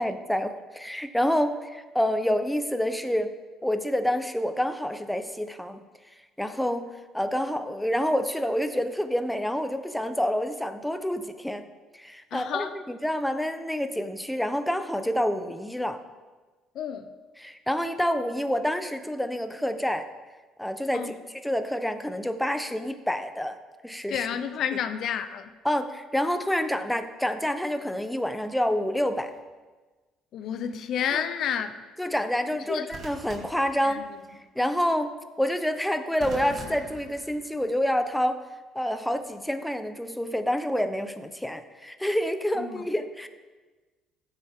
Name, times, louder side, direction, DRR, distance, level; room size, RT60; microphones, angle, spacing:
voice 1, 0.0-3.3 3.6-5.8 6.4-11.6 11.9-16.0 17.4-20.1 20.6-21.1 21.4-23.6 23.8-24.3 25.6-29.3 31.1-31.2 32.0-34.0 34.6-35.1 35.4-38.4 38.7-43.3, equal, 5° left, 0.9 m, -28 dB
voice 2, 12.3-12.8 16.7-17.2 20.9-21.1 24.1-25.5 30.3-31.7 32.7-32.9 33.8-34.2 42.6-42.8, left 8 dB, 60° left, 0.6 m, -30 dB
sound 1, 29.0-29.4 32.9-34.4 36.2-37.9 39.1-39.4, right 3 dB, 55° right, 2.0 m, -44 dB
14.0 x 8.3 x 3.7 m
hypercardioid pair, 65°, 0 cm